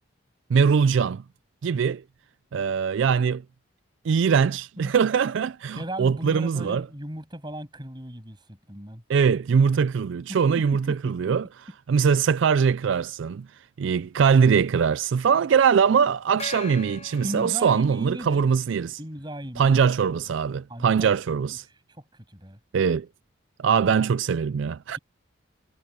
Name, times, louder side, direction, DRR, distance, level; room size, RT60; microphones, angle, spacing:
voice 1, 0.5-1.2 1.6-2.0 2.5-3.4 4.0-6.8 9.1-11.4 11.9-13.5 13.8-19.0 19.6-21.6 22.7-23.1 23.6-25.0, right 6 dB, 65° right, 0.3 m, -22 dB
voice 2, 5.8-9.0 10.3-11.1 17.2-18.4 19.0-19.8 20.1-20.3 20.7-21.1 21.9-22.6, equal, 20° right, 7.6 m, -37 dB
Gong, 16.4-18.4, left 4 dB, 35° left, 7.0 m, -41 dB
head